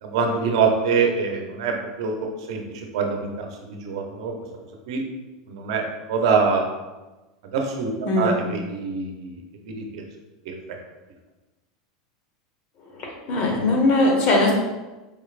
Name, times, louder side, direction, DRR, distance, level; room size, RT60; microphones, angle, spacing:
voice 1, 0.0-4.4 4.9-5.0 5.5-6.6 7.4-7.9 8.2-9.4 9.7-10.0 10.5-10.8, right 5 dB, 75° right, 3 dB, 0.7 m, -25 dB
voice 2, 8.1-8.4 13.0-14.5, left 2 dB, 50° left, 0 dB, 1.1 m, -20 dB
4.8 x 3.1 x 2.4 m, 1.1 s
supercardioid pair, 110°, 3 cm